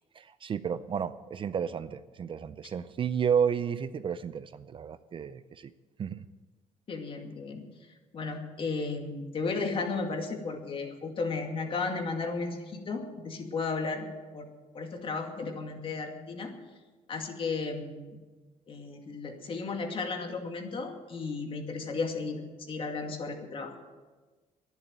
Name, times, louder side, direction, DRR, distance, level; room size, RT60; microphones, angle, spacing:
voice 1, 0.2-5.7 6.0-6.2, right 7 dB, 40° right, 14 dB, 0.5 m, -32 dB
voice 2, 6.9-7.6 8.1-14.1 14.3-14.5 14.7-16.5 17.1-18.2 18.7-23.7, left 4 dB, 40° left, 4 dB, 2.3 m, -34 dB
11.0 x 11.0 x 8.9 m, 1.3 s
cardioid pair, 120°, 14 cm